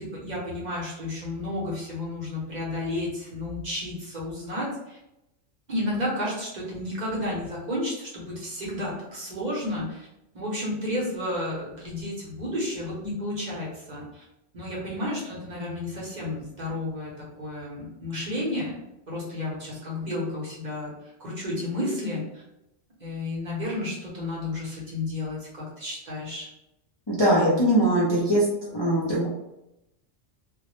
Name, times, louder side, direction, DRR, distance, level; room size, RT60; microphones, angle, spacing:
voice 1, 0.0-5.0 5.7-10.1 10.3-14.2 14.5-22.4 23.0-26.5, left 1 dB, 45° right, -5 dB, 0.7 m, -32 dB
voice 2, 27.1-28.4 28.7-29.3, right 1 dB, 45° left, -7 dB, 0.3 m, -21 dB
2.2 x 2.0 x 2.9 m, 0.89 s
omnidirectional pair, 1.2 m